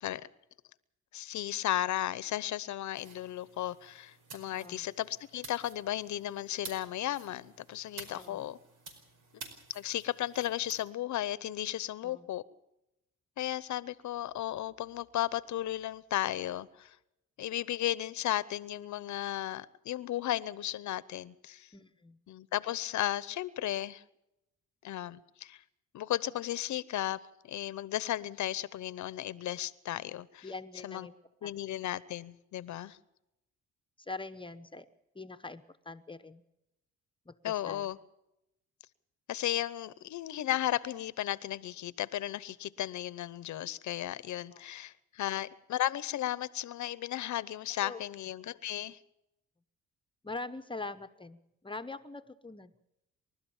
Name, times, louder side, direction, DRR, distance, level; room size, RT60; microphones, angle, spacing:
voice 1, 1.1-8.6 9.7-12.4 13.4-17.0 17.4-21.7 22.3-24.0 24.8-25.6 25.9-30.5 30.8-31.1 31.4-33.0 37.4-38.0 39.3-49.0, left 13 dB, 70° left, 0.9 m, -35 dB
sound 1, 2.9-10.8, right 3 dB, 85° right, 5.0 m, -51 dB
voice 2, 4.5-4.8 8.1-8.4 12.0-12.3 21.7-22.2 30.4-31.1 31.4-31.5 34.0-34.9 35.1-36.4 37.3-37.9 44.5-44.6 47.8-48.0 50.2-52.7, left 3 dB, 15° left, 1.0 m, -43 dB
28.5 x 13.0 x 7.2 m
cardioid pair, 90°, 30 cm